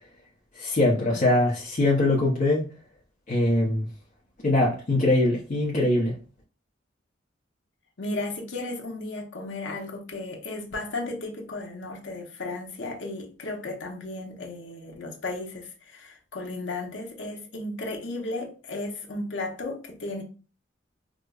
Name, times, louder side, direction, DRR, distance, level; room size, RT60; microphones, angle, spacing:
voice 1, 0.5-2.7 3.3-3.9 4.4-6.1, left 2 dB, 45° left, 0.7 m, -22 dB
voice 2, 8.0-20.2, left 2 dB, 75° left, 0.8 m, -34 dB
4.9 x 2.0 x 2.3 m
head